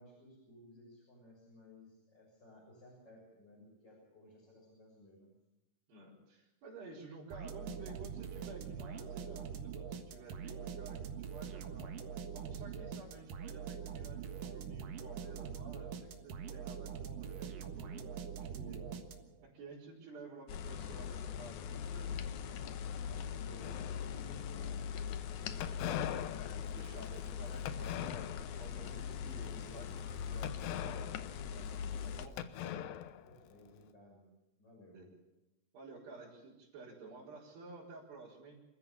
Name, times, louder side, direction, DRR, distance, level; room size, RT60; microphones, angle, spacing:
voice 1, 0.0-5.3 18.6-18.9 23.0-25.1 25.3-25.9 33.2-34.3 34.6-35.1, left 1 dB, 25° left, -4 dB, 7.0 m, -58 dB
voice 2, 5.9-12.0 12.3-18.1 18.4-18.8 19.4-22.2 25.6-25.8 26.6-32.4 34.9-35.1 35.7-38.6, right 3 dB, 80° right, -9 dB, 6.7 m, -53 dB
sound 1, 7.3-19.5, right 7 dB, 65° right, 3.0 m, -44 dB
sound 2, 20.5-32.3, left 7 dB, 70° left, 1.8 m, -41 dB
sound 3, 23.6-24.4 25.6-28.7 29.1-29.4 30.4-32.1 32.4-33.7, left 10 dB, 90° left, 3.1 m, -42 dB
27.5 x 14.5 x 7.3 m, 0.97 s
omnidirectional pair, 4.7 m